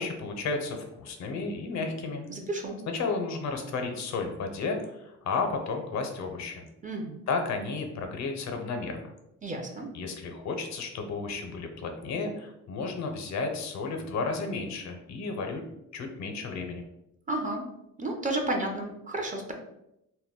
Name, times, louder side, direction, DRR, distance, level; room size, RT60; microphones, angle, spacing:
voice 1, 0.0-2.2 2.9-6.6 7.3-9.0 9.9-15.6 15.9-16.8, left 4 dB, 65° left, 4 dB, 0.6 m, -33 dB
voice 2, 2.3-2.8 6.8-7.2 9.4-9.9 17.3-17.6 18.0-19.5, right 2 dB, 25° right, 2 dB, 0.5 m, -32 dB
2.2 x 2.1 x 3.5 m, 0.84 s
cardioid pair, 90°, 30 cm